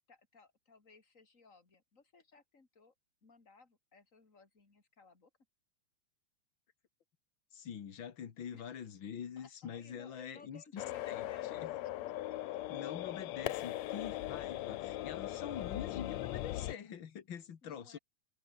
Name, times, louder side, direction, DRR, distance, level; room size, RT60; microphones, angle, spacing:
voice 1, 0.1-2.9 3.2-5.3 8.5-8.8 9.4-11.9 15.4-15.7 17.6-18.0, left 4 dB, 25° left, 3.6 m, -60 dB
voice 2, 7.5-11.3 11.5-11.7 12.7-18.0, left 8 dB, 45° left, 2.0 m, -45 dB
sound 1, 10.8-16.7, left 15 dB, 70° left, 1.9 m, -39 dB
omnidirectional pair, 3.6 m